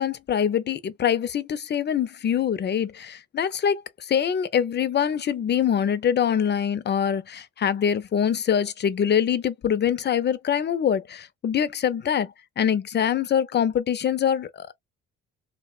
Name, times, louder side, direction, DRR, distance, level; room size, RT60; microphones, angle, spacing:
voice 1, 0.0-3.8 4.1-14.7, left 8 dB, 35° left, 0.4 m, -24 dB
2.6 x 2.1 x 2.3 m
cardioid pair, 90°, 30 cm